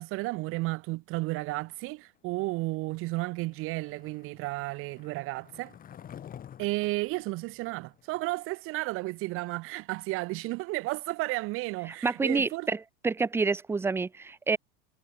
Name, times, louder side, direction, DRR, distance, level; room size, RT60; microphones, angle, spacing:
voice 1, 0.0-5.7 6.6-12.7, right 22 dB, 45° right, 0.9 m, -33 dB
Skateboard, 2.9-8.3, left 9 dB, 25° left, 2.4 m, -50 dB
voice 2, 12.0-12.8 13.0-14.6, right 4 dB, 10° right, 0.6 m, -27 dB
supercardioid pair, 125°, 31 cm